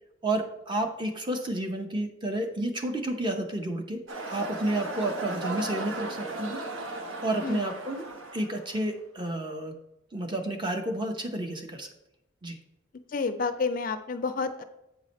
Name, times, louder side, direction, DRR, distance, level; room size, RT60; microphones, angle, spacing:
voice 1, 0.2-4.0 4.3-8.0 8.3-9.7 10.1-11.9 12.4-12.6, right 1 dB, 20° right, 4 dB, 0.7 m, -31 dB
sound 1, 4.1-8.9, right 2 dB, 80° right, 1.1 m, -36 dB
voice 2, 13.1-14.6, left 4 dB, 45° left, 10 dB, 0.4 m, -29 dB
8.1 x 4.9 x 4.1 m, 0.90 s
head